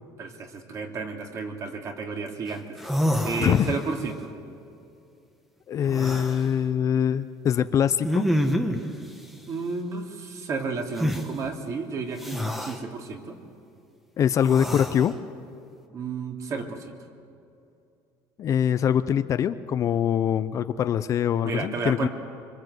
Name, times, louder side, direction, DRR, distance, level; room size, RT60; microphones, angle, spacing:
voice 1, 0.2-2.7 3.2-4.2 9.5-13.4 15.9-16.8 21.4-22.1, right 4 dB, 35° right, 3 dB, 2.7 m, -32 dB
sound 1, 2.5-2.6 2.8-4.0 5.8-6.4 8.0-8.9 11.0-11.2 12.2-12.8 14.3-15.1, equal, ahead, 1.4 m, -27 dB
voice 2, 3.4-3.8 5.7-8.2 14.2-15.2 18.4-22.1, left 9 dB, 35° left, 12 dB, 0.6 m, -23 dB
25.5 x 25.0 x 8.1 m, 2.6 s
cardioid pair, 155°, 9 cm